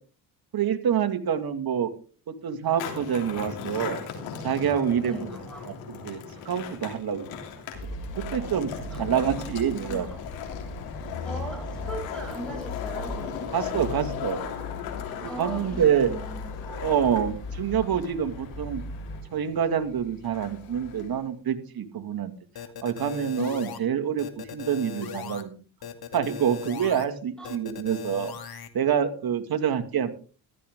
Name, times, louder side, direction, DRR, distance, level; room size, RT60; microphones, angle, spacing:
voice 1, 0.5-1.9 2.3-4.0 4.4-5.3 5.6-6.2 6.5-7.3 8.3-8.7 9.0-10.1 13.5-14.4 15.2-16.1 16.8-18.8 19.3-22.3 22.8-25.6 26.1-30.1, right 8 dB, 50° right, 7 dB, 2.3 m, -26 dB
Skateboard, 2.6-21.3, left 7 dB, 90° left, 3.3 m, -38 dB
voice 2, 5.0-5.7 8.9-9.5 9.8-10.3 11.2-13.5 15.3-16.9 27.4-27.5, right 1 dB, ahead, 0 dB, 6.9 m, -39 dB
sound 1, 7.7-19.2, left 3 dB, 70° left, 5.7 m, -38 dB
sound 2, 22.6-23.8 24.2-25.4 25.8-27.1 27.4-28.7, left 8 dB, 55° left, 2.5 m, -38 dB
15.0 x 12.5 x 3.8 m, 0.39 s
supercardioid pair, 70°, 45 cm